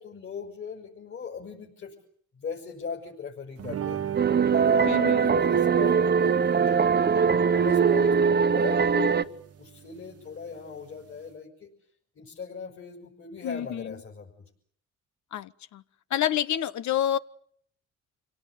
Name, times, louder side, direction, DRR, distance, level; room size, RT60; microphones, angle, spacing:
voice 1, 0.0-1.9 2.3-4.0 4.5-7.3 7.6-9.2 9.6-11.7 12.2-14.3, left 5 dB, 45° left, 5.7 m, -39 dB
sound 1, 3.6-11.3, right 10 dB, 50° right, 1.2 m, -38 dB
sound 2, 4.2-9.2, right 6 dB, 35° right, 1.2 m, -22 dB
voice 2, 4.9-5.3 13.4-13.9 15.3-15.8 16.1-17.2, left 11 dB, 70° left, 1.1 m, -28 dB
27.0 x 17.5 x 9.4 m
cardioid pair, 90°, 30 cm